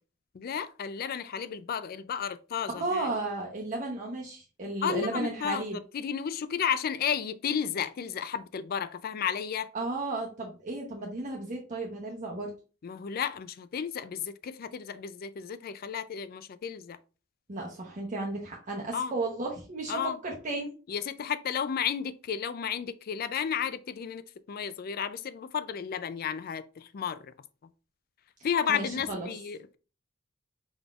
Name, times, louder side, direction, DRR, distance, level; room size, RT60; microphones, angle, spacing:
voice 1, 0.3-3.1 4.8-9.7 12.8-17.0 18.9-19.1 19.9-20.2 20.9-27.3 28.4-29.8, left 7 dB, 50° left, 0.4 m, -33 dB
voice 2, 2.7-5.8 9.7-12.5 17.5-20.7 28.7-29.3, right 2 dB, 40° right, 0.8 m, -34 dB
5.1 x 3.9 x 2.4 m
head